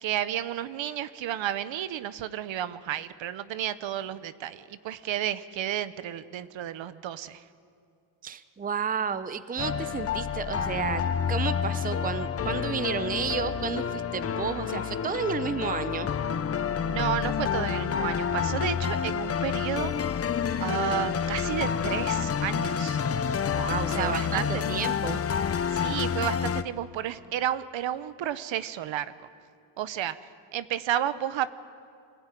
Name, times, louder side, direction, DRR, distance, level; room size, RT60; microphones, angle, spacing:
voice 1, 0.0-7.4 16.9-19.9 20.6-23.0 23.8-24.8 25.7-29.3 29.8-30.2 30.5-31.6, right 11 dB, 70° right, 14 dB, 1.0 m, -32 dB
voice 2, 8.2-11.0 11.3-16.1 23.5-25.2, right 6 dB, 20° right, 13 dB, 0.6 m, -32 dB
sound 1, 9.6-26.6, left 7 dB, 30° left, 0.7 m, -29 dB
24.0 x 15.5 x 9.2 m, 2.5 s
cardioid pair, 115°, 47 cm